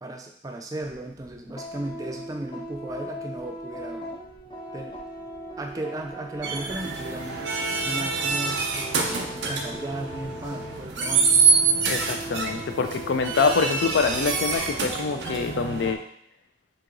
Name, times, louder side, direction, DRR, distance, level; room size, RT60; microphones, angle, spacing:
voice 1, 0.0-4.1 4.7-5.0 5.6-7.5 7.8-11.4, right 1 dB, 20° right, 2 dB, 0.4 m, -35 dB
sound 1, 0.8-16.0, right 1 dB, 25° left, 0.5 m, -39 dB
sound 2, 6.4-15.9, right 4 dB, 80° right, 0.5 m, -26 dB
voice 2, 11.9-16.0, left 5 dB, 80° left, 7 dB, 0.4 m, -25 dB
2.8 x 2.8 x 3.8 m, 0.67 s
head